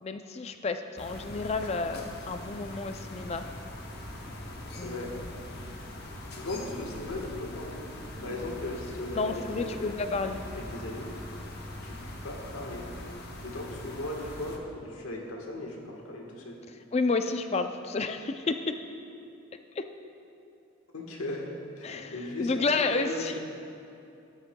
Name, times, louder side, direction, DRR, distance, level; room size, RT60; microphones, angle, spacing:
voice 1, 0.0-3.5 4.7-5.3 9.1-10.4 16.9-18.7 19.8-19.9 21.8-23.4, left 3 dB, 30° left, 8 dB, 0.4 m, -31 dB
sound 1, 1.0-14.6, left 1 dB, 50° left, 0.9 m, -42 dB
voice 2, 4.8-5.1 6.3-7.8 8.2-10.0 10.5-11.1 11.8-13.1 13.4-16.6 20.9-21.5 21.8-22.6 22.9-23.4, left 1 dB, 90° left, 0 dB, 1.4 m, -37 dB
12.5 x 11.5 x 2.2 m, 2.7 s
head